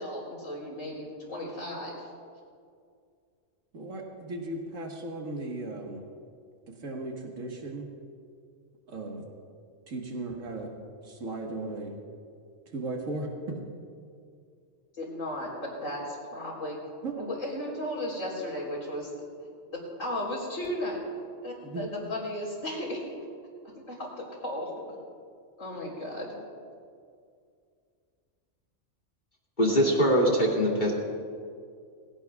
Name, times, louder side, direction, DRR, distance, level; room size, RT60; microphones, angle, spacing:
voice 1, 0.0-2.0 14.9-15.5 15.8-16.8 17.2-19.2 19.7-21.0 21.4-23.0 23.9-24.7 25.6-26.4, left 1 dB, 75° left, -3 dB, 4.3 m, -35 dB
voice 2, 3.7-6.0 6.7-7.9 8.9-9.2 9.9-10.7 11.0-11.9 12.7-13.6 17.0-17.1 21.6-21.9, right 2 dB, 80° right, 0 dB, 2.0 m, -36 dB
voice 3, 29.6-30.9, equal, 35° left, -3 dB, 2.6 m, -22 dB
22.0 x 17.0 x 2.4 m, 2.2 s
omnidirectional pair, 1.4 m